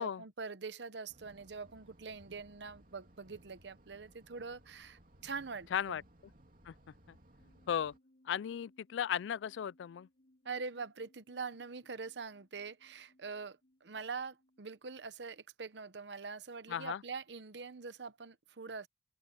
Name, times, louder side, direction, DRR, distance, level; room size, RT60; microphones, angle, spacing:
voice 1, 0.0-6.0 10.4-18.9, right 4 dB, 70° right, 0.9 m, -44 dB
sound 1, 1.1-8.0, right 1 dB, 50° right, 3.0 m, -62 dB
voice 2, 5.7-6.0 6.7-6.8 7.1-7.2 7.7-7.9 8.3-10.1 16.7-17.0, left 8 dB, 80° left, 0.3 m, -36 dB
sound 2, 7.4-14.8, left 1 dB, 50° left, 4.8 m, -70 dB
open air
head